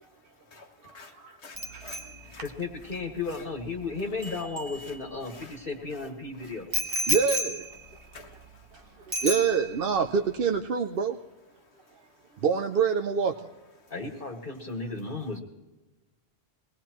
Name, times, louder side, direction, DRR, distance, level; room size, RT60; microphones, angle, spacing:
voice 1, 0.0-3.5 4.0-7.4 7.8-9.3 11.5-12.5 13.3-13.4 13.8-15.4, left 4 dB, 80° left, 5 dB, 1.8 m, -54 dB
Bicycle bell, 1.6-5.4 6.7-8.8 9.1-10.0 10.3-10.5, equal, 25° right, 1.4 m, -34 dB
voice 2, 2.4-6.7 13.9-15.4, left 3 dB, 50° left, 1 dB, 1.8 m, -34 dB
voice 3, 7.1-7.7 9.1-11.2 12.4-13.3, right 6 dB, 60° right, 5 dB, 0.8 m, -26 dB
23.0 x 18.5 x 3.0 m, 1.1 s
omnidirectional pair, 1.1 m